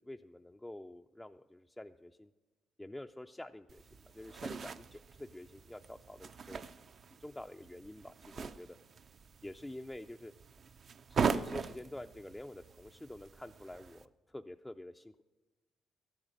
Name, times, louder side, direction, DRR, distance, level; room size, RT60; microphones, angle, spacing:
voice 1, 0.0-2.3 2.8-3.8 4.1-6.6 7.2-8.7 9.4-10.3 11.1-15.2, left 1 dB, 10° left, 5 dB, 0.3 m, -48 dB
sound 1, 3.7-14.0, right 6 dB, 50° right, 0.5 m, -41 dB
13.0 x 8.9 x 6.4 m, 1.2 s
cardioid pair, 90°, 0 cm